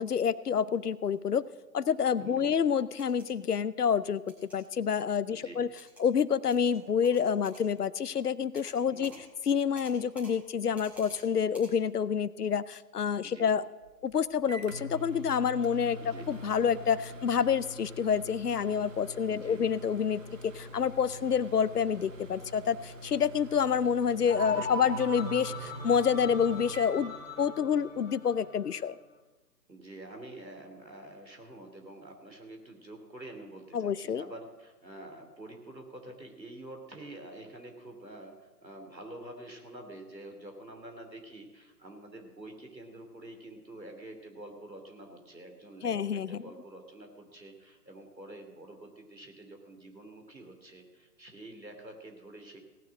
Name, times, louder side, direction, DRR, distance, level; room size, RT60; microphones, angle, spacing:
voice 1, 0.0-1.4 1.7-4.2 4.5-5.7 6.0-9.1 9.4-13.6 14.0-29.0 33.7-34.2 45.8-46.4, left 7 dB, 65° left, 19 dB, 0.7 m, -28 dB
voice 2, 2.2-2.5 5.3-5.6 8.9-9.2 13.2-13.5 16.0-16.4 19.3-19.7 24.4-24.7 29.7-52.6, right 1 dB, 90° right, 4 dB, 3.1 m, -47 dB
sound 1, 3.0-3.3 4.3-4.6 5.8-6.0 6.5-6.7 7.0-7.6 8.5-8.8 9.0-9.2 9.7-10.3 10.7-11.2 11.5-11.7, equal, 5° right, 1.8 m, -51 dB
Microwave oven, 13.8-27.8, left 1 dB, 50° right, 1.9 m, -46 dB
sound 2, 24.3-28.8, left 1 dB, 25° left, 2.2 m, -39 dB
17.5 x 6.8 x 7.4 m, 1.2 s
figure-of-eight pair, 140°, 50 cm